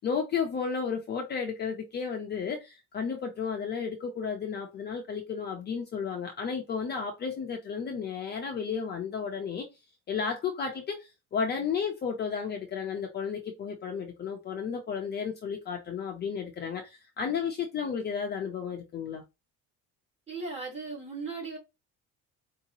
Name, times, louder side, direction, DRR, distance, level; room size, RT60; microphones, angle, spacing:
voice 1, 0.0-9.7 10.1-19.2, left 6 dB, 30° left, 0.6 m, -33 dB
voice 2, 20.3-21.6, right 4 dB, 20° right, 1.8 m, -37 dB
4.7 x 2.8 x 2.7 m
cardioid pair, 175°, 33 cm